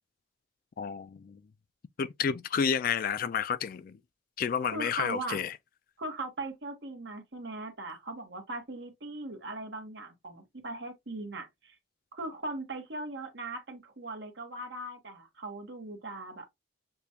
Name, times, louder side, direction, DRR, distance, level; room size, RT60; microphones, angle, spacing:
voice 1, 0.8-1.4 2.0-4.0 4.4-5.5, left 7 dB, 45° left, 0.3 m, -30 dB
voice 2, 4.6-5.4 6.0-11.8 12.1-16.5, right 2 dB, 60° right, 1.2 m, -39 dB
6.8 x 2.3 x 2.7 m
head